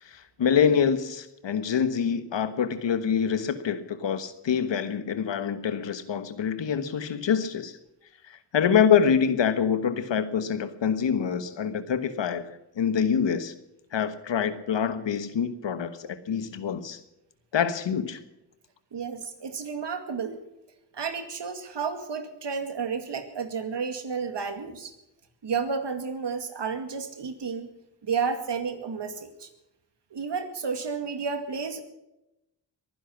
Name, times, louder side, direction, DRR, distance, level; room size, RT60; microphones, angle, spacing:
voice 1, 0.0-7.8 8.3-12.5 12.7-13.5 13.9-17.0 17.5-18.2, left 7 dB, 90° left, 12 dB, 1.4 m, -25 dB
voice 2, 18.9-20.4 20.9-24.9 25.4-27.7 28.0-29.5 30.1-31.8, right 5 dB, 75° right, 8 dB, 2.3 m, -31 dB
22.5 x 10.5 x 5.9 m, 0.90 s
cardioid pair, 60°, 42 cm